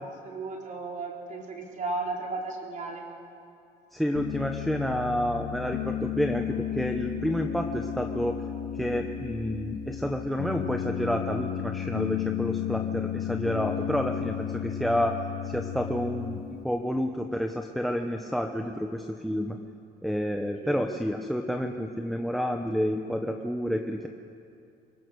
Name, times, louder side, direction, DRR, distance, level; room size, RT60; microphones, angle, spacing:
voice 1, 0.2-3.0 20.5-20.9, right 3 dB, 50° right, 0 dB, 4.3 m, -35 dB
voice 2, 3.9-8.4 8.7-15.2 15.4-19.6 20.0-24.1, equal, ahead, 4 dB, 1.1 m, -29 dB
Piano, 4.1-16.6, left 10 dB, 70° left, 1.2 m, -33 dB
23.5 x 20.0 x 6.4 m, 2.6 s
cardioid pair, 110°, 17 cm